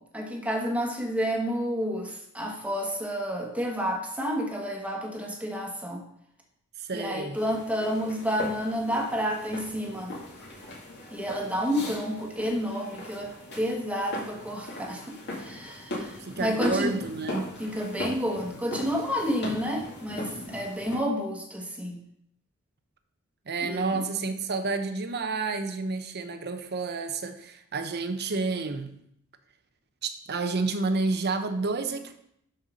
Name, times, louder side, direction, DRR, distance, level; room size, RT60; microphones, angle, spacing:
voice 1, 0.0-6.0 6.9-10.1 11.1-17.0 17.6-22.0 23.6-24.0, equal, 5° right, 1 dB, 1.4 m, -30 dB
voice 2, 6.8-7.4 16.2-17.5 23.5-28.9 30.0-32.1, right 3 dB, 50° right, 8 dB, 0.8 m, -30 dB
sound 1, 7.3-21.0, left 1 dB, 50° left, 2.3 m, -39 dB
6.7 x 5.6 x 6.3 m, 0.72 s
head